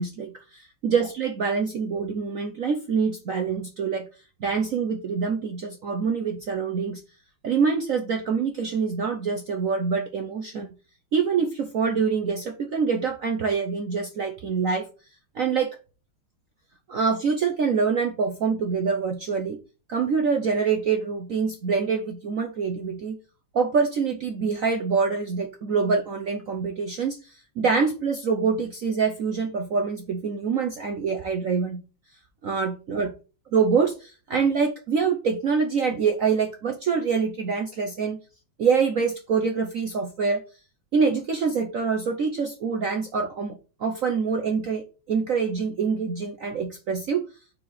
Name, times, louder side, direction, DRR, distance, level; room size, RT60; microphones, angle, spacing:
voice 1, 0.0-4.1 4.4-7.0 7.4-10.7 11.1-14.9 15.3-15.8 16.9-19.6 19.9-23.2 23.5-31.8 32.4-33.1 33.5-38.2 38.6-40.4 40.9-47.3, right 5 dB, 65° right, 4 dB, 0.8 m, -25 dB
4.8 x 4.7 x 5.5 m, 0.33 s
omnidirectional pair, 2.4 m